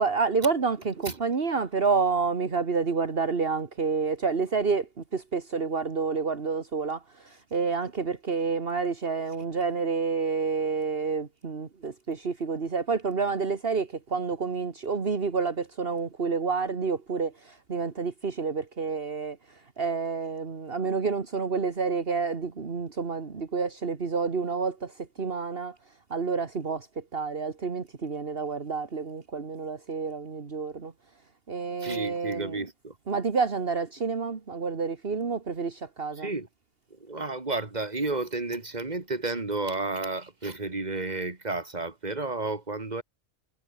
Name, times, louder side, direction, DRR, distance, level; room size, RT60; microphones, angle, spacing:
voice 1, 0.0-19.4 19.8-25.8 26.1-26.9 27.1-30.9 31.5-32.6 33.1-36.3, right 5 dB, 60° right, 2.0 m, -29 dB
voice 2, 31.8-33.0 36.1-36.5 36.9-43.0, right 3 dB, 40° right, 2.8 m, -32 dB
omnidirectional pair, 1.1 m